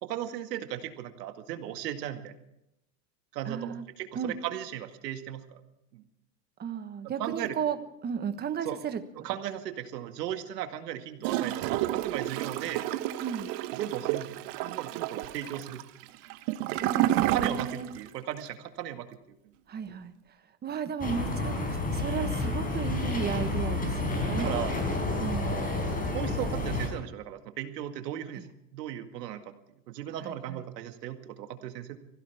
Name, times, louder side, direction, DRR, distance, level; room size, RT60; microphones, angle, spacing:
voice 1, 0.0-2.3 3.3-5.6 5.9-6.0 7.0-7.6 8.6-8.8 9.2-12.9 13.7-14.3 14.6-15.8 17.3-19.2 19.4-19.5 19.9-20.0 23.6-24.0 24.4-24.7 26.0-28.4 28.7-29.5 29.9-32.0, right 11 dB, 90° right, 7 dB, 2.1 m, -36 dB
voice 2, 3.4-3.9 4.1-4.3 6.6-7.8 8.0-9.0 13.2-13.5 16.7-17.9 19.7-20.1 20.6-21.5 21.9-24.5 25.2-25.7 28.4-28.5 30.2-30.6, right 7 dB, 20° right, 9 dB, 1.3 m, -34 dB
Gurgling / Toilet flush, 11.2-18.1 18.4-18.5, right 15 dB, 50° right, 1.1 m, -30 dB
sound 1, 21.0-26.9, left 2 dB, 20° left, 4.6 m, -30 dB
24.0 x 16.0 x 3.5 m, 0.82 s
supercardioid pair, 140°, 47 cm